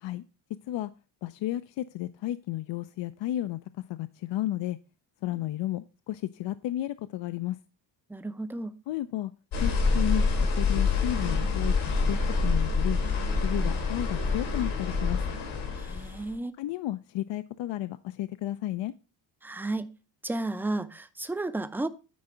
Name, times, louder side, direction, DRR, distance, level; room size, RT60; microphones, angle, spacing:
voice 1, 1.2-3.6 3.9-4.8 5.2-7.6 8.9-9.3 9.6-10.2 10.6-12.2 12.4-13.0 13.4-15.2 16.6-18.9, left 14 dB, 65° left, 0.5 m, -32 dB
voice 2, 8.1-8.7 15.8-16.5 19.4-19.9 20.2-21.9, right 2 dB, 5° right, 0.4 m, -32 dB
sound 1, 9.5-16.3, left 4 dB, 90° left, 3.4 m, -26 dB
9.5 x 4.4 x 4.9 m
cardioid pair, 115°, 47 cm